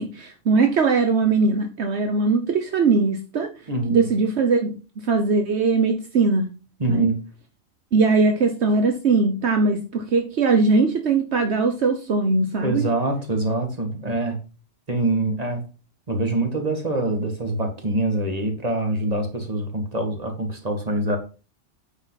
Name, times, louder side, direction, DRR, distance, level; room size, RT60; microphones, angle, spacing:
voice 1, 0.0-3.5 3.9-4.8 5.1-6.5 6.9-7.1 7.9-12.8, right 4 dB, 70° right, 5 dB, 1.2 m, -20 dB
voice 2, 3.7-4.1 6.8-7.2 12.6-14.4 14.9-15.6 16.1-21.2, right 2 dB, 35° right, 3 dB, 2.2 m, -24 dB
8.9 x 6.2 x 4.1 m, 0.33 s
omnidirectional pair, 1.2 m